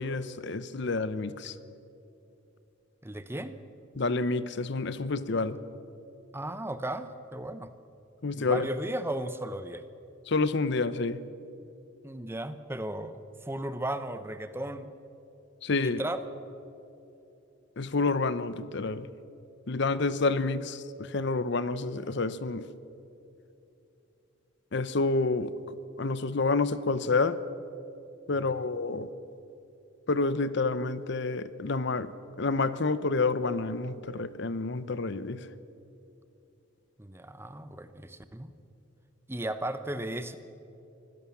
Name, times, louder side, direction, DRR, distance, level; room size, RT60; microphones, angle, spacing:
voice 1, 0.0-1.5 4.0-5.6 8.2-8.7 10.3-11.2 15.6-16.0 17.8-19.1 19.7-22.7 24.7-25.5 26.0-27.4 28.3-29.1 30.1-32.1 32.4-35.5, left 3 dB, 55° left, 15 dB, 0.7 m, -28 dB
voice 2, 3.0-3.6 6.3-7.7 8.3-9.8 12.0-14.9 15.8-16.3 28.6-28.7 37.0-38.5 39.3-40.4, right 1 dB, 10° right, 11 dB, 0.8 m, -35 dB
24.5 x 16.5 x 7.2 m, 2.8 s
head